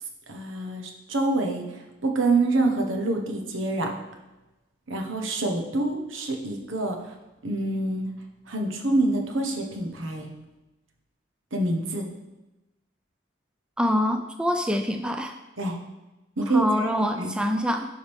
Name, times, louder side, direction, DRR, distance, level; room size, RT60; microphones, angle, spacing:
voice 1, 0.3-1.6 2.0-3.9 4.9-7.0 7.4-8.1 8.5-10.3 11.5-12.1 15.6-15.8 16.4-16.7 17.2-17.4, right 2 dB, 90° right, 2 dB, 1.2 m, -26 dB
voice 2, 13.8-15.3 16.5-17.9, left 1 dB, 5° right, 5 dB, 0.4 m, -25 dB
11.5 x 5.0 x 3.6 m, 1.0 s
head